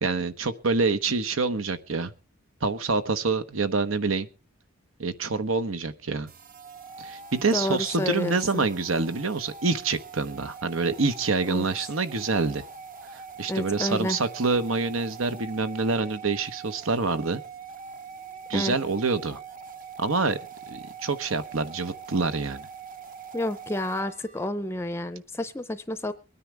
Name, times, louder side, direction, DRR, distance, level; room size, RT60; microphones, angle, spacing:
voice 1, 0.0-2.1 2.6-4.3 5.0-6.3 7.0-12.6 13.1-17.4 18.5-19.4 20.0-20.4 20.7-22.7, right 3 dB, 80° right, 10 dB, 1.1 m, -26 dB
sound 1, 6.3-24.5, right 6 dB, 45° right, 0.9 m, -43 dB
voice 2, 7.5-8.6 11.5-11.6 13.5-14.2 18.5-18.7 23.3-26.1, left 1 dB, 15° left, 12 dB, 0.6 m, -30 dB
23.0 x 9.9 x 3.4 m, 0.32 s
head